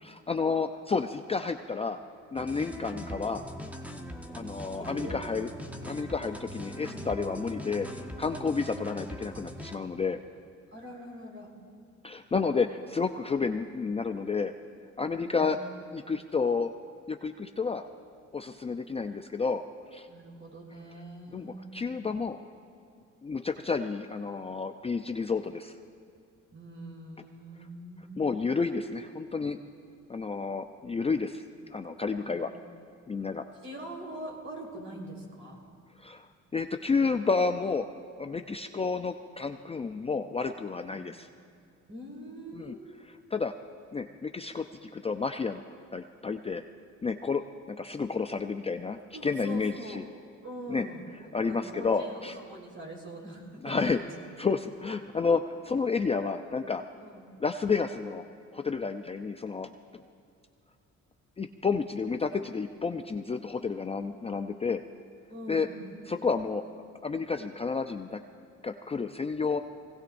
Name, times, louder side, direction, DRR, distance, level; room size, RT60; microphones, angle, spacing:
voice 1, 0.0-2.0 2.3-3.5 4.3-5.5 5.8-10.2 12.0-14.5 15.0-15.6 15.9-16.7 17.1-17.8 18.3-19.6 19.9-20.1 21.3-22.4 23.2-25.7 28.2-29.6 30.1-31.4 31.7-32.5 33.1-33.4 36.0-36.3 36.5-37.9 38.2-41.3 42.5-42.8 43.1-43.5 43.9-45.6 45.9-46.6 47.0-47.4 47.7-49.0 49.2-50.0 50.7-50.9 51.3-52.4 53.6-54.0 54.4-56.8 57.4-58.2 58.5-59.7 61.4-64.8 65.5-65.7 66.1-66.6 67.0-68.2 68.6-69.6, left 4 dB, 20° left, 6 dB, 0.4 m, -30 dB
sound 1, 2.4-9.7, equal, 5° right, 1.0 m, -41 dB
voice 2, 4.8-5.4 10.7-11.5 15.2-15.8 20.1-21.7 26.5-28.2 32.3-32.7 33.6-35.6 40.8-41.0 41.9-43.0 49.1-50.0 50.4-54.1 57.0-57.2 65.3-65.9, right 1 dB, 45° right, -2 dB, 4.2 m, -43 dB
24.0 x 17.0 x 2.6 m, 2.3 s
cardioid pair, 90°, 30 cm